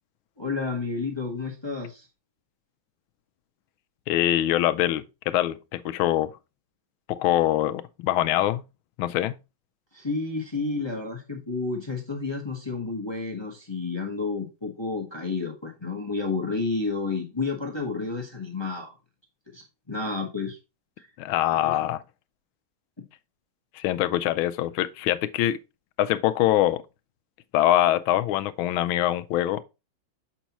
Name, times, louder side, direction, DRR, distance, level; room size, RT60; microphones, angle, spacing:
voice 1, 0.4-2.0 9.9-18.9 19.5-20.6 21.0-21.1 21.6-21.9 23.0-23.1, left 4 dB, 20° left, 0.9 m, -31 dB
voice 2, 4.1-6.3 7.1-8.6 9.0-9.4 21.2-22.0 23.7-25.6 26.0-26.8 27.5-29.6, left 13 dB, 90° left, 1.4 m, -24 dB
7.2 x 5.4 x 2.9 m
omnidirectional pair, 2.2 m